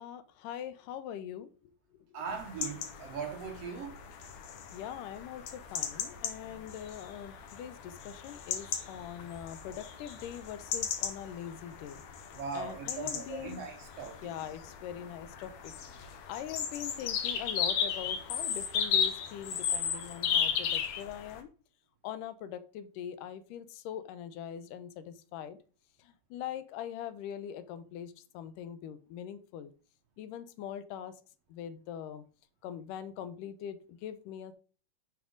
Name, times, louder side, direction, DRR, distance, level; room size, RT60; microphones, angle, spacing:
voice 1, 0.0-1.5 4.7-12.0 12.5-13.6 14.2-15.7 16.3-21.5 22.0-25.6 26.0-29.7 30.2-31.1 31.5-32.2 32.6-34.5, left 9 dB, 80° left, 2.3 m, -42 dB
voice 2, 2.1-4.0 12.3-14.3, right 6 dB, 70° right, 1.5 m, -40 dB
sound 1, 2.3-21.4, left 7 dB, 65° left, 2.1 m, -36 dB
10.0 x 5.8 x 3.8 m
omnidirectional pair, 3.8 m